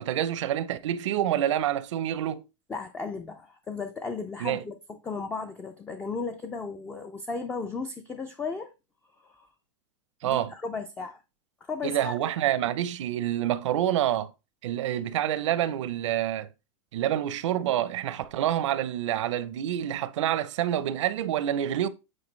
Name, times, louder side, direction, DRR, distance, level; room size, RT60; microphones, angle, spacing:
voice 1, 0.0-2.4 4.4-4.6 10.2-10.5 11.8-14.3 14.6-16.5 16.9-21.9, right 11 dB, 75° right, 0.7 m, -27 dB
voice 2, 2.7-8.7 9.2-9.5 10.2-11.2 11.7-12.2, left 4 dB, 10° left, 0.4 m, -35 dB
8.6 x 4.6 x 3.2 m
supercardioid pair, 160°, 16 cm